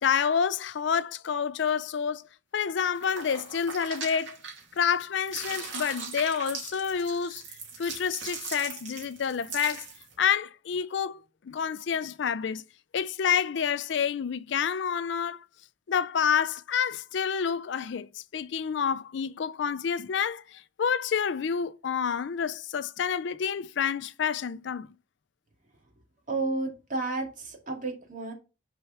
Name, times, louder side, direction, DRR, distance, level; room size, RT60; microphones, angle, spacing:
voice 1, 0.0-2.2 2.5-4.4 4.8-7.4 7.8-9.9 10.2-11.2 11.5-12.6 12.9-15.4 15.9-24.9, left 7 dB, 65° left, 0.4 m, -28 dB
sound 1, 2.9-4.9 5.2-10.1, right 5 dB, 65° right, 2.5 m, -40 dB
voice 2, 26.3-28.3, right 3 dB, 40° right, 2.3 m, -32 dB
6.2 x 4.6 x 5.7 m
head